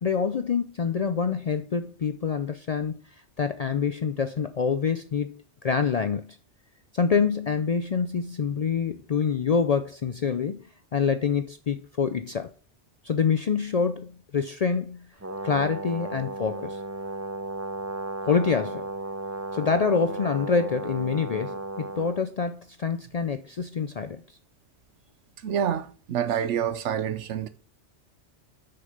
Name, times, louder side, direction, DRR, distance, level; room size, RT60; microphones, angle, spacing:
voice 1, 0.0-3.0 3.4-5.4 5.6-6.4 6.9-10.6 10.9-12.5 13.0-15.1 15.4-16.8 18.2-18.9 19.5-24.2, left 6 dB, 55° left, 0.4 m, -26 dB
Brass instrument, 15.2-22.2, right 2 dB, 25° right, 0.4 m, -34 dB
voice 2, 25.4-27.5, right 9 dB, 80° right, 1.0 m, -27 dB
6.5 x 5.8 x 5.2 m
omnidirectional pair, 1.2 m